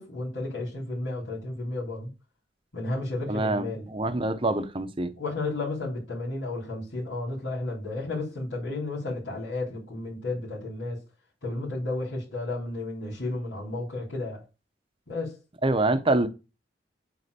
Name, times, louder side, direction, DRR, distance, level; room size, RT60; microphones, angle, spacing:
voice 1, 0.0-2.1 2.7-3.9 5.2-11.0 11.4-14.4 15.1-15.4, left 2 dB, 80° left, 3.9 m, -32 dB
voice 2, 3.3-5.1 15.6-16.3, right 2 dB, 30° right, 0.8 m, -25 dB
8.4 x 3.9 x 6.8 m
head